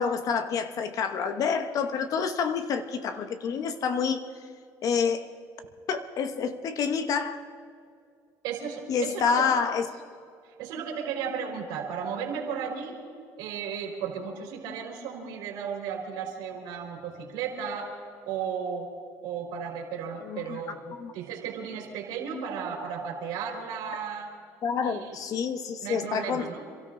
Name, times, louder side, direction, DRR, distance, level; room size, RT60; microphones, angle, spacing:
voice 1, 0.0-4.2 4.8-5.3 5.9-7.4 8.9-9.9 20.2-20.6 21.0-21.1 24.6-26.5, left 6 dB, 55° left, 1.1 m, -28 dB
voice 2, 8.4-9.5 10.6-13.0 13.4-18.0 18.3-18.9 19.2-24.3 24.8-25.2 25.8-26.7, right 7 dB, 80° right, 3.9 m, -34 dB
28.0 x 13.5 x 3.8 m
supercardioid pair, 100°, 7 cm